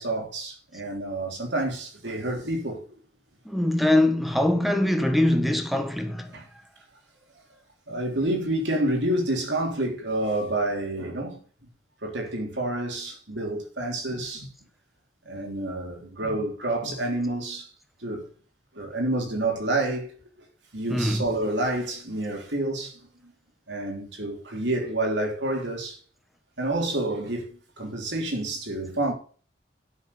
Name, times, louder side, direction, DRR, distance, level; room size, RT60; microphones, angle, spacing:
voice 1, 0.0-3.0 6.3-6.5 7.9-11.4 12.0-14.5 15.2-17.7 18.0-18.3 18.7-20.1 20.4-20.5 20.7-23.3 23.7-26.0 26.6-29.1, right 1 dB, 80° right, 3.3 m, -28 dB
voice 2, 3.4-6.3 20.9-21.2, left 1 dB, ahead, 1.3 m, -23 dB
11.0 x 6.5 x 6.8 m
head